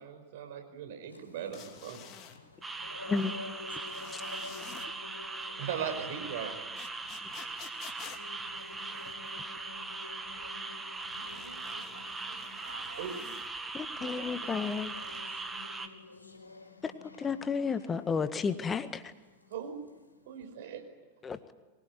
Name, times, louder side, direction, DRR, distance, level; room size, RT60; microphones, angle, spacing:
voice 1, 0.0-2.0 5.6-6.6 13.0-13.1 19.5-19.8 20.3-20.8, right 8 dB, 55° right, 5.1 m, -38 dB
sound 1, 1.1-13.8 14.3-20.4, left 3 dB, 85° left, 4.6 m, -51 dB
sound 2, 1.5-2.4 3.9-4.9 6.8-9.4 11.0-13.5 14.6-15.2, left 9 dB, 35° left, 2.7 m, -51 dB
sound 3, 2.6-15.9, right 3 dB, 10° right, 2.1 m, -40 dB
voice 2, 10.4-13.1 13.9-14.7, right 3 dB, 80° right, 2.6 m, -52 dB
voice 3, 13.7-14.9 16.8-16.9 17.2-19.1 21.2-21.4, left 5 dB, 20° left, 1.6 m, -32 dB
24.0 x 21.0 x 9.5 m
figure-of-eight pair, 90°, 0 cm